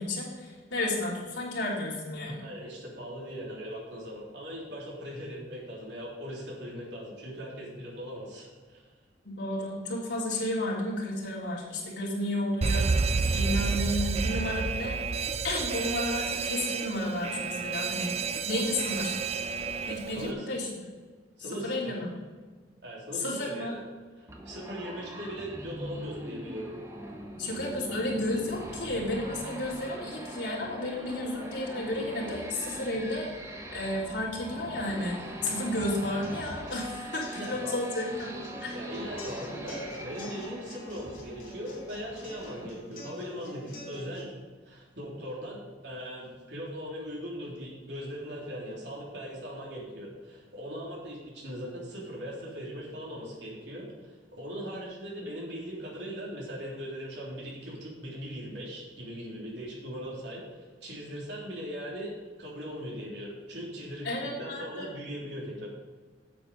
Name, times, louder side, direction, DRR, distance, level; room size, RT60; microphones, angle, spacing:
voice 1, 0.0-2.4 9.2-12.9 13.3-15.1 15.4-19.2 19.9-20.7 21.5-22.1 23.1-23.7 27.4-33.3 33.7-38.7 64.0-64.9, left 1 dB, 90° left, -5 dB, 3.2 m, -32 dB
voice 2, 2.4-8.8 20.1-20.5 21.4-21.9 22.8-23.8 24.2-26.7 37.3-37.8 38.7-44.3 44.7-65.7, equal, 75° right, -4 dB, 3.4 m, -39 dB
Alarm, 12.6-20.3, right 4 dB, 35° right, 0.4 m, -30 dB
sound 1, 24.3-42.7, right 1 dB, 15° right, 1.1 m, -42 dB
sound 2, 36.2-44.2, equal, 50° left, 2.8 m, -46 dB
8.4 x 7.9 x 5.3 m, 1.4 s
head